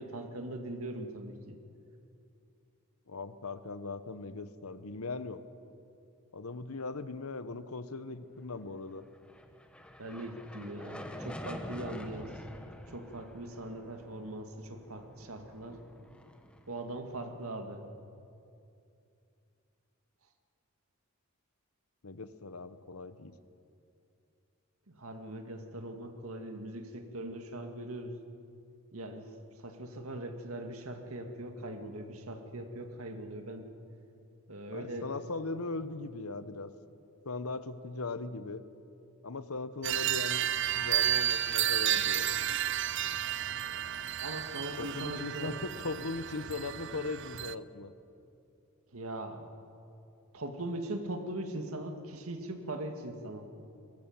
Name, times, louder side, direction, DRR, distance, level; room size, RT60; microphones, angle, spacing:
voice 1, 0.0-1.6 10.0-12.4 12.9-15.8 16.7-17.8 24.9-28.2 28.9-29.3 29.6-33.7 34.5-35.1 44.2-45.6 48.9-49.5 50.3-53.5, right 1 dB, 75° right, 5 dB, 2.0 m, -40 dB
voice 2, 3.1-5.4 6.3-9.1 22.0-23.3 34.7-36.7 37.2-38.6 39.2-40.5 40.7-42.4 44.8-47.9, left 3 dB, 80° left, 12 dB, 1.0 m, -39 dB
sound 1, 9.0-17.4, equal, 5° left, 1.0 m, -47 dB
sound 2, 39.8-47.5, right 11 dB, 55° right, 0.5 m, -32 dB
22.5 x 18.5 x 7.3 m, 2.6 s
head